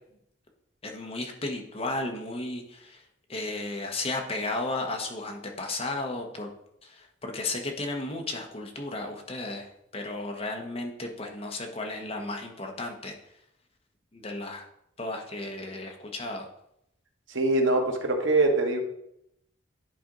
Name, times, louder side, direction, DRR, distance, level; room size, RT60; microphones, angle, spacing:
voice 1, 0.8-3.0 3.3-6.5 6.8-13.1 14.1-14.7 15.0-16.5, left 2 dB, 30° left, 2 dB, 1.1 m, -34 dB
voice 2, 17.3-18.8, right 2 dB, 85° right, 3 dB, 1.3 m, -23 dB
10.0 x 4.3 x 3.9 m, 0.76 s
head